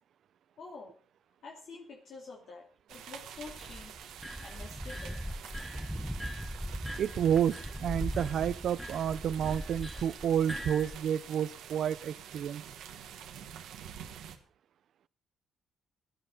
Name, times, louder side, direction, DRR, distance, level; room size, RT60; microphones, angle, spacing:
voice 1, 0.6-0.9 1.4-2.6 2.9-3.9 4.4-5.1, left 4 dB, 65° left, 2.6 m, -47 dB
sound 1, 2.9-14.4, right 9 dB, 85° right, 1.4 m, -48 dB
sound 2, 3.4-11.0, equal, ahead, 0.8 m, -39 dB
voice 2, 7.0-12.6, right 9 dB, 65° right, 0.6 m, -30 dB
16.5 x 11.5 x 4.0 m
cardioid pair, 90°, 0 cm